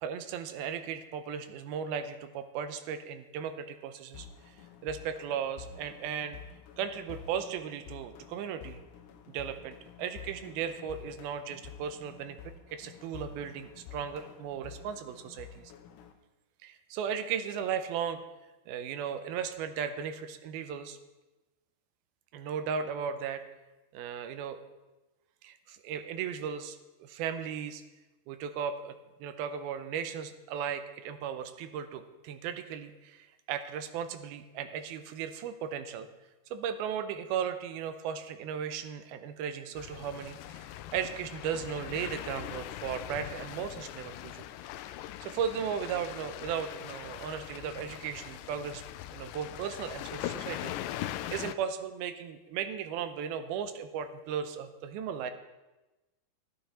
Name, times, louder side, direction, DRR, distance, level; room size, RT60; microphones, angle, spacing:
voice 1, 0.0-4.6 4.8-6.4 6.8-8.8 9.3-12.4 12.7-15.7 16.6-18.2 18.7-21.0 22.3-23.4 23.9-24.6 25.4-27.8 28.3-36.1 36.5-44.4 45.2-48.8 49.1-50.7 51.0-55.3, right 7 dB, 85° right, 9 dB, 2.6 m, -36 dB
sound 1, 4.1-16.1, left 8 dB, 70° left, 2.1 m, -50 dB
sound 2, 39.8-51.5, left 13 dB, 85° left, 1.9 m, -41 dB
13.5 x 11.5 x 4.3 m, 1.1 s
omnidirectional pair, 4.3 m